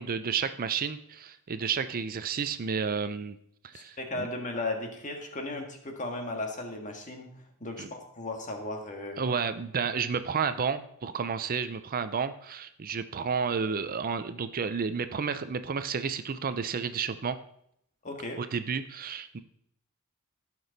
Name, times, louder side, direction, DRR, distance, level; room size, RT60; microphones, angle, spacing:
voice 1, 0.0-3.4 3.6-4.3 7.8-7.9 9.2-17.4 18.4-19.4, right 6 dB, 40° right, 11 dB, 0.5 m, -31 dB
voice 2, 3.7-9.2 18.0-18.4, left 2 dB, 35° left, 3 dB, 1.7 m, -36 dB
16.0 x 6.2 x 4.0 m, 0.71 s
head